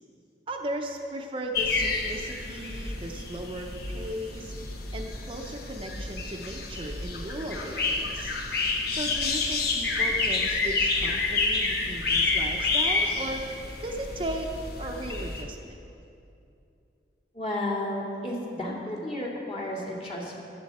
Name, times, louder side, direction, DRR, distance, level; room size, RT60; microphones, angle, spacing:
voice 1, 0.5-4.5 4.9-8.4 8.9-13.5 13.8-14.5 14.8-15.8, right 1 dB, 30° right, 2 dB, 0.7 m, -36 dB
sound 1, 1.5-15.4, left 3 dB, 60° left, 1.1 m, -29 dB
voice 2, 17.3-20.4, left 1 dB, 35° left, -4 dB, 2.5 m, -32 dB
14.0 x 11.5 x 4.3 m, 2.7 s
head